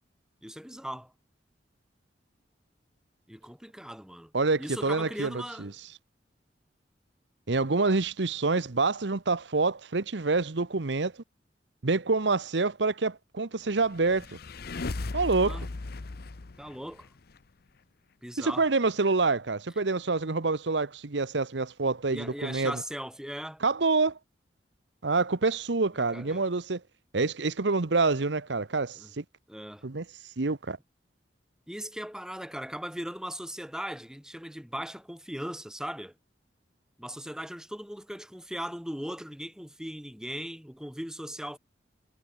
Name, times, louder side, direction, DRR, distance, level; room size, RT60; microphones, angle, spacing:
voice 1, 0.4-1.1 3.3-4.3 4.6-5.7 15.4-15.7 16.6-17.1 18.2-18.6 22.1-23.6 26.1-26.4 29.0-29.1 29.5-29.9 31.7-36.1 37.0-41.6, equal, 5° right, 3.1 m, -38 dB
voice 2, 4.3-5.3 5.6-5.7 7.5-11.1 11.8-14.3 15.1-15.6 18.4-22.8 23.6-24.2 25.0-26.8 27.1-29.2 29.8-30.0 30.4-30.8, right 3 dB, 70° right, 1.0 m, -27 dB
sound 1, 13.8-17.4, left 3 dB, 60° left, 0.8 m, -37 dB
head